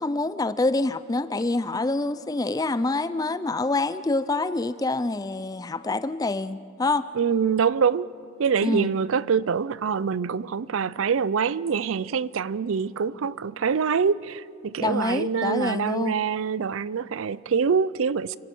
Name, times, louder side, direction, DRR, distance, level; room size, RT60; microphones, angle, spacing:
voice 1, 0.0-7.0 8.6-8.9 14.8-16.2, left 2 dB, 15° left, 0.4 m, -26 dB
voice 2, 7.2-8.1 8.4-18.4, right 6 dB, 70° right, 0.4 m, -25 dB
29.0 x 17.0 x 6.1 m
head